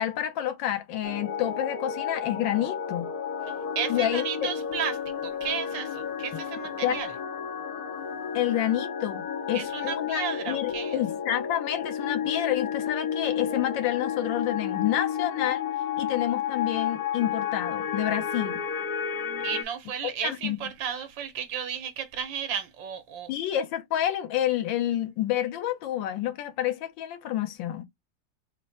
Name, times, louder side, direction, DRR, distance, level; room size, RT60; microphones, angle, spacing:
voice 1, 0.0-3.1 3.9-4.5 6.8-7.0 8.3-15.6 16.0-18.6 20.2-20.6 23.3-27.8, left 11 dB, 80° left, 1.5 m, -29 dB
sound 1, 1.0-19.6, left 8 dB, 65° left, 1.1 m, -32 dB
voice 2, 3.7-7.1 9.5-11.0 19.4-23.3, right 8 dB, 80° right, 1.6 m, -33 dB
4.4 x 2.1 x 4.1 m
omnidirectional pair, 2.0 m